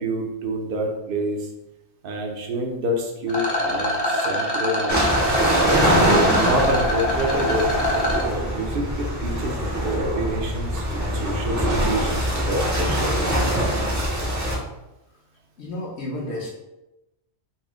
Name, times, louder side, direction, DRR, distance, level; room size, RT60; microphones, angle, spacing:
voice 1, 0.0-1.5 2.0-5.1 5.8-7.7 8.2-9.6 9.8-13.1 13.8-14.2, right 1 dB, 55° right, 2 dB, 0.8 m, -28 dB
Rattle, 3.3-8.3, left 1 dB, 35° left, 0.4 m, -24 dB
sound 1, 4.9-14.6, right 1 dB, 20° right, 0.6 m, -23 dB
voice 2, 15.6-16.5, left 1 dB, 70° left, -4 dB, 1.1 m, -31 dB
4.1 x 2.1 x 3.6 m, 0.94 s
omnidirectional pair, 1.2 m